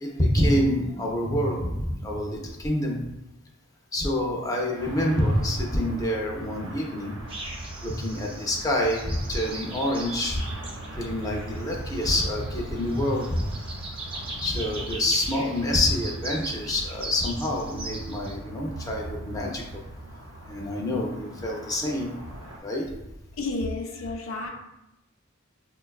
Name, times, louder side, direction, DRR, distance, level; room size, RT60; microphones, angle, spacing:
voice 1, 0.0-3.0 3.9-7.1 7.8-10.4 10.9-13.4 14.4-19.8 20.5-22.1 22.6-22.9, left 1 dB, 15° left, -1 dB, 0.5 m, -27 dB
sound 1, 4.8-22.6, right 1 dB, 65° right, 0.7 m, -41 dB
sound 2, 7.3-18.4, right 2 dB, 25° right, 0.6 m, -39 dB
voice 2, 23.4-24.5, left 2 dB, 85° left, 2 dB, 0.5 m, -31 dB
5.2 x 2.2 x 2.3 m, 0.93 s
head